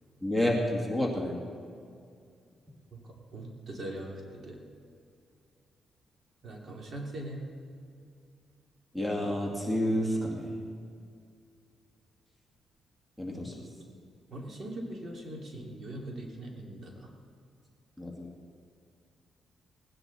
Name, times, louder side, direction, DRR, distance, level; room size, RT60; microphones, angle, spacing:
voice 1, 0.2-1.3 8.9-10.7 13.2-13.5 18.0-18.3, left 1 dB, 5° right, -1 dB, 2.2 m, -29 dB
voice 2, 3.3-4.6 6.4-7.4 14.3-17.1, right 1 dB, 50° right, 0 dB, 2.7 m, -41 dB
19.0 x 9.9 x 4.1 m, 2.3 s
cardioid pair, 80°, 0 cm